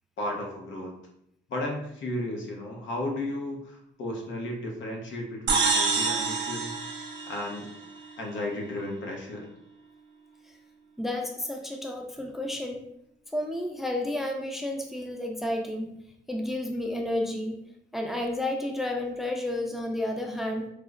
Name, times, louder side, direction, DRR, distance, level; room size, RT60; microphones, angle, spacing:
voice 1, 0.2-0.9 1.5-6.7 7.3-7.7 8.2-9.5, left 1 dB, 75° left, 1 dB, 0.9 m, -34 dB
sound 1, 5.5-8.1, right 4 dB, 65° right, 0.7 m, -27 dB
voice 2, 11.0-12.8 13.3-16.0 16.3-17.6 17.9-20.7, left 1 dB, ahead, 2 dB, 0.4 m, -31 dB
4.8 x 2.0 x 2.4 m, 0.76 s
cardioid pair, 90°, 20 cm